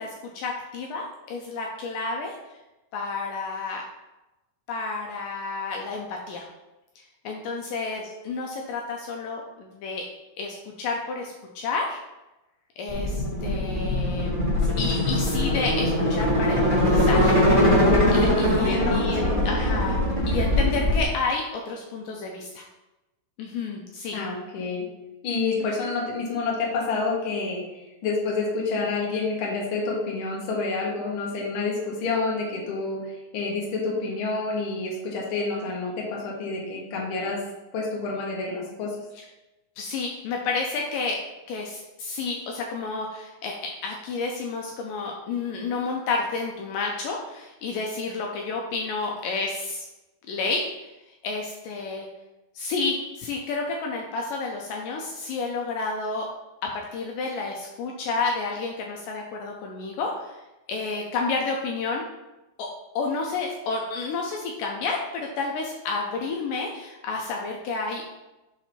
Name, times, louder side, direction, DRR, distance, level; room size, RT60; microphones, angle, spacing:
voice 1, 0.0-2.4 2.9-3.8 4.7-6.5 7.3-10.0 10.4-12.0 12.8-14.3 14.8-17.4 18.1-22.6 23.4-24.2 39.8-41.2 41.5-49.9 50.3-50.7 51.2-52.1 52.6-56.3 56.6-60.4 60.7-62.0 62.6-62.7 63.0-68.0, left 4 dB, 80° left, 1 dB, 2.0 m, -30 dB
sound 1, 12.9-21.0, left 1 dB, 20° right, 1.4 m, -22 dB
voice 2, 18.3-19.4 24.1-24.8 25.2-37.4 37.7-39.0, left 3 dB, 65° left, -3 dB, 1.3 m, -28 dB
5.9 x 4.4 x 4.2 m, 1.0 s
omnidirectional pair, 4.3 m